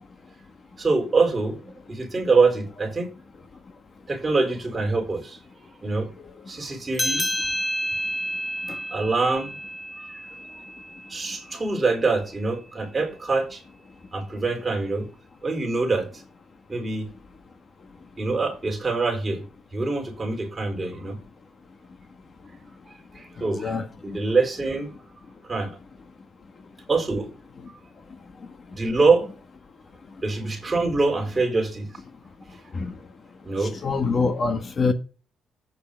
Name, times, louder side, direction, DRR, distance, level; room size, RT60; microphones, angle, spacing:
voice 1, 0.8-1.6 1.9-3.1 4.1-5.4 5.8-6.1 6.5-7.3 8.7-9.6 10.0-10.2 11.1-13.6 14.1-15.1 15.4-16.2 16.7-17.1 18.2-19.4 19.7-21.2 22.9-23.8 24.1-24.9 25.4-25.8 26.9-27.3 28.8-29.3 30.2-31.9 33.4-33.7, right 3 dB, 25° right, 4.2 m, -24 dB
sound 1, 6.9-11.8, equal, 15° left, 2.1 m, -30 dB
voice 2, 23.4-24.2 32.7-32.9 33.6-34.9, left 4 dB, 40° left, 1.7 m, -26 dB
8.8 x 6.6 x 5.2 m
cardioid pair, 90°, 0 cm